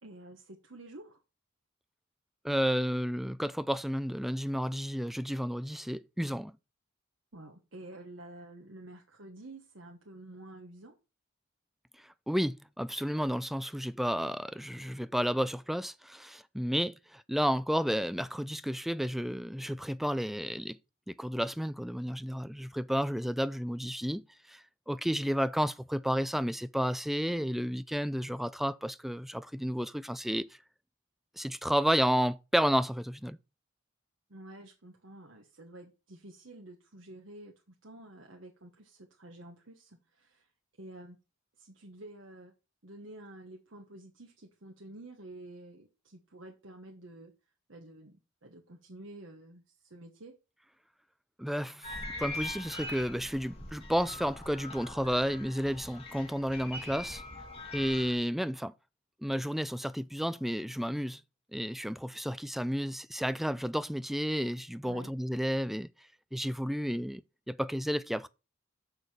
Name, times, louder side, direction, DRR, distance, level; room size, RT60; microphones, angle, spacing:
voice 1, 0.0-1.2 7.3-11.0 34.3-40.5 40.8-41.2 41.6-42.5 42.8-47.3 47.7-50.4 64.9-65.1, right 1 dB, 75° right, 1.2 m, -50 dB
voice 2, 2.4-6.5 12.3-20.8 21.1-24.2 24.5-24.6 24.9-30.5 31.4-33.4 51.4-57.2 57.7-58.7 59.2-61.2 61.5-65.9 66.3-67.2 67.5-68.3, equal, ahead, 0.3 m, -31 dB
sound 1, 51.8-58.1, left 2 dB, 30° left, 2.4 m, -42 dB
6.9 x 6.5 x 4.4 m
head